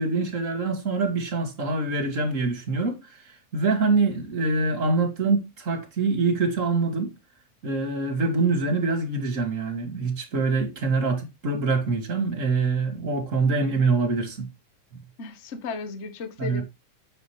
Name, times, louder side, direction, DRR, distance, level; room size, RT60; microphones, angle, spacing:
voice 1, 0.0-7.1 7.6-14.5 16.4-16.6, right 3 dB, 30° right, 1.9 m, -25 dB
voice 2, 15.2-16.6, left 4 dB, 70° left, 0.6 m, -35 dB
9.3 x 7.9 x 3.2 m
omnidirectional pair, 3.5 m